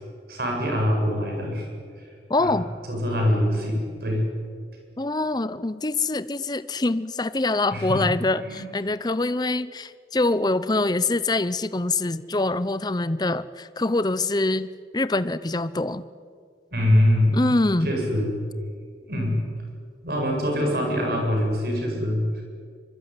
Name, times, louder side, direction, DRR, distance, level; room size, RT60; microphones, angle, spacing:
voice 1, 0.3-1.7 2.0-2.1 2.4-2.5 2.9-4.3 7.7-8.0 8.4-8.6 16.7-17.4 17.8-18.4 19.0-19.4 20.0-22.4, left 1 dB, 60° right, 1 dB, 7.9 m, -24 dB
voice 2, 2.3-2.7 5.0-14.7 14.9-16.0 17.3-17.9, left 2 dB, 25° left, 15 dB, 0.7 m, -24 dB
25.0 x 24.0 x 9.7 m, 2.1 s
head